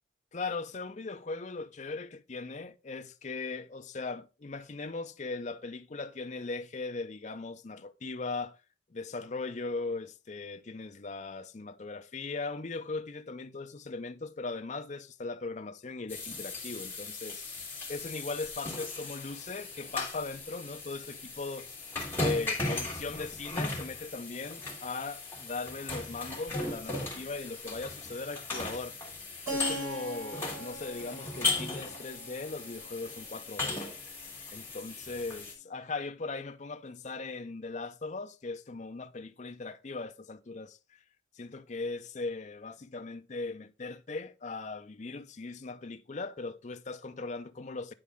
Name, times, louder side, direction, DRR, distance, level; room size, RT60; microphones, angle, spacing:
voice 1, 0.3-8.6 8.9-21.7 22.1-29.0 29.5-33.8 34.5-40.8 41.4-47.9, left 3 dB, 35° left, 0.5 m, -39 dB
sound 1, 16.1-35.5, left 2 dB, 10° left, 2.0 m, -37 dB
Keyboard (musical), 29.5-34.0, right 1 dB, 15° right, 2.5 m, -41 dB
9.8 x 4.2 x 3.5 m
head